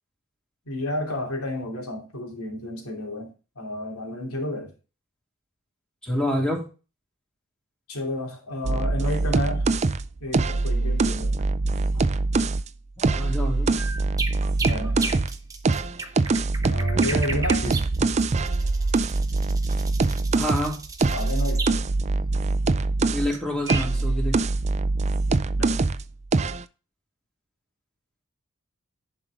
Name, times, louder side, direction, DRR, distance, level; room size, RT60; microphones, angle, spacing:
voice 1, 0.7-3.3 3.5-4.7 7.9-9.7 10.2-11.5 11.7-12.1 14.7-15.0 16.7-17.9 21.1-21.9 25.6-25.8, left 1 dB, 80° left, 3.1 m, -31 dB
voice 2, 6.0-6.6 13.0-13.7 20.3-20.8 23.1-24.4, left 1 dB, 5° left, 3.2 m, -27 dB
sound 1, 8.6-12.6 13.0-15.4 15.6-23.3 23.7-26.0 26.3-26.6, right 3 dB, 30° right, 0.5 m, -23 dB
sound 2, 13.8-21.8 23.3-23.4 23.7-23.9, right 3 dB, 15° right, 1.1 m, -34 dB
11.0 x 5.4 x 3.5 m
head